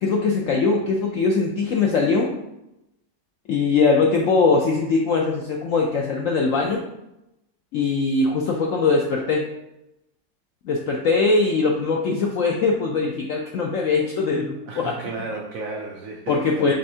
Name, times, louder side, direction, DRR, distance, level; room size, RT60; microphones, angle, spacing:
voice 1, 0.0-2.4 3.5-6.8 7.7-9.5 10.6-14.9 16.3-16.7, left 4 dB, 75° left, 0 dB, 0.7 m, -21 dB
voice 2, 14.7-16.7, right 3 dB, 70° right, 0 dB, 0.8 m, -33 dB
5.4 x 3.5 x 2.7 m, 0.89 s
omnidirectional pair, 1.9 m